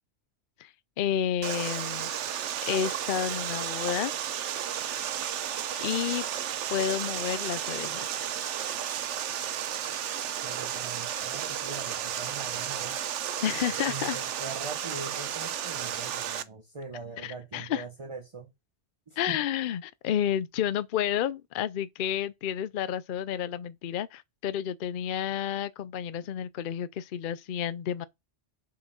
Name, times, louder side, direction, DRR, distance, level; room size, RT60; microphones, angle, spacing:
voice 1, 1.0-2.1 2.6-4.1 5.8-6.2 6.7-8.0 13.4-14.2 17.2-17.8 19.2-28.0, left 9 dB, 55° left, 0.6 m, -30 dB
Water, 1.4-16.4, right 10 dB, 85° right, 1.0 m, -33 dB
voice 2, 10.4-13.0 13.9-18.5 19.1-19.4, right 4 dB, 30° right, 0.9 m, -42 dB
7.2 x 4.8 x 5.5 m
omnidirectional pair, 1.2 m